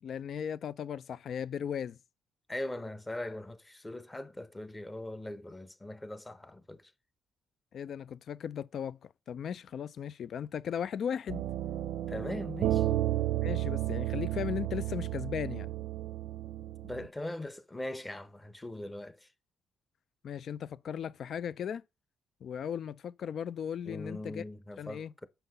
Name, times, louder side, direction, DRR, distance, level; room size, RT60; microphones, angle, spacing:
voice 1, 0.0-2.0 7.7-11.4 13.4-15.7 20.2-21.8 22.4-24.4 24.8-25.1, left 8 dB, 60° left, 0.4 m, -37 dB
voice 2, 2.5-6.9 12.1-13.0 16.8-19.3 23.8-25.3, left 1 dB, 15° left, 0.9 m, -40 dB
sound 1, 11.3-17.1, right 14 dB, 85° right, 0.6 m, -32 dB
7.0 x 5.7 x 5.4 m
cardioid pair, 90°, 0 cm